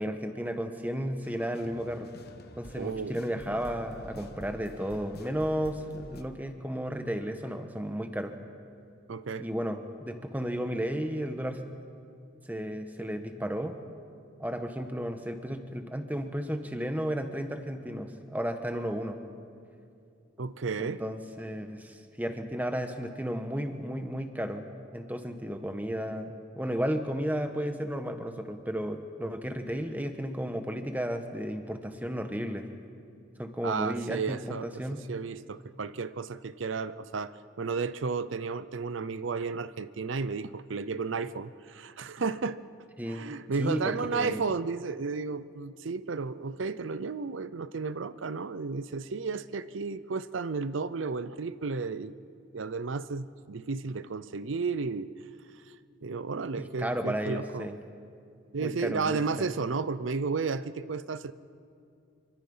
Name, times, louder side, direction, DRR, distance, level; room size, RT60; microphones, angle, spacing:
voice 1, 0.0-2.1 2.6-8.4 9.4-11.7 12.5-13.8 14.4-19.2 20.8-24.6 24.9-32.7 33.4-35.1 43.0-43.2 43.6-44.4 56.6-57.7 58.6-59.2, equal, 10° right, 6 dB, 1.2 m, -33 dB
sound 1, 1.2-6.2, left 1 dB, 50° left, 1.3 m, -47 dB
voice 2, 2.8-3.2 9.1-9.5 20.4-21.0 33.6-42.6 43.1-52.1 52.5-55.1 55.7-55.8 56.0-57.7 58.5-61.3, right 4 dB, 80° right, 15 dB, 0.6 m, -33 dB
26.0 x 24.5 x 5.6 m, 2.4 s
head